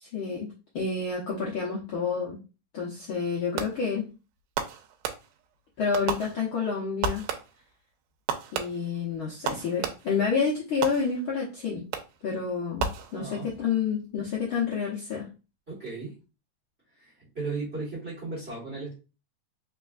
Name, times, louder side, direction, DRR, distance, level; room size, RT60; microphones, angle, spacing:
voice 1, 0.0-2.4 2.7-4.1 5.8-7.3 8.5-11.8 12.2-12.9 13.1-15.3, left 5 dB, 75° left, -5 dB, 1.1 m, -29 dB
Fireworks, 3.6-4.0 4.6-5.6 5.9-6.7 7.0-7.7 8.3-10.3 10.8-11.4 11.9-12.3 12.8-13.5, right 6 dB, 85° right, 2.1 m, -34 dB
voice 2, 13.1-13.5 15.7-16.2 16.9-18.9, right 3 dB, 35° right, -5 dB, 1.1 m, -36 dB
4.3 x 3.5 x 2.4 m, 0.32 s
omnidirectional pair, 3.6 m